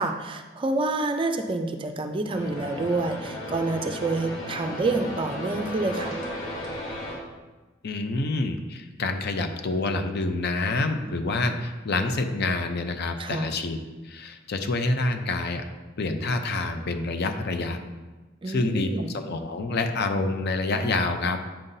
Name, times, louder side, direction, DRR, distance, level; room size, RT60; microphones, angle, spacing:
voice 1, 0.0-6.1 13.2-13.5 18.4-19.2, right 2 dB, 25° right, 5 dB, 0.4 m, -28 dB
sound 1, 2.3-7.2, left 1 dB, 80° left, 1.9 m, -35 dB
voice 2, 7.8-13.8 14.0-15.6 16.0-17.8 18.5-21.4, left 2 dB, 55° left, 6 dB, 0.6 m, -27 dB
8.9 x 5.6 x 2.7 m, 1.2 s
head